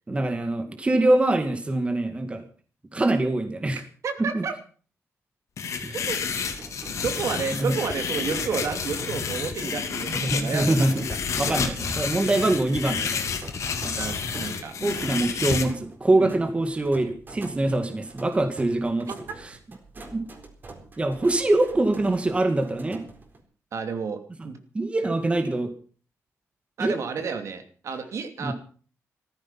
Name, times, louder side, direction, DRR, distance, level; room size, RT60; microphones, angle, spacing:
voice 1, 0.1-2.4 2.9-3.8 4.3-4.4 5.8-6.0 7.5-7.8 10.2-11.0 11.4-13.3 13.8-14.1 14.8-19.1 19.4-19.5 20.1-20.3 21.0-23.0 24.7-25.7 26.8-26.9 28.4-28.5, right 2 dB, 20° right, 7 dB, 2.2 m, -24 dB
voice 2, 4.0-4.5 5.9-6.2 7.0-10.9 11.5-11.7 14.0-14.7 16.2-16.3 23.7-24.6 26.8-28.5, right 5 dB, 65° right, 6 dB, 2.8 m, -31 dB
sound 1, 5.6-15.6, left 6 dB, 70° left, 3.0 m, -30 dB
sound 2, 6.0-23.4, right 3 dB, 35° right, 4.1 m, -46 dB
sound 3, 7.0-7.2 7.9-8.0 8.7-8.9 9.5-9.6 10.3-10.5 11.1-11.3 12.0-12.1 12.7-12.9 13.5-13.7, left 5 dB, 35° left, 1.1 m, -40 dB
15.5 x 14.5 x 5.7 m, 0.42 s
wide cardioid pair, 125°, 6 cm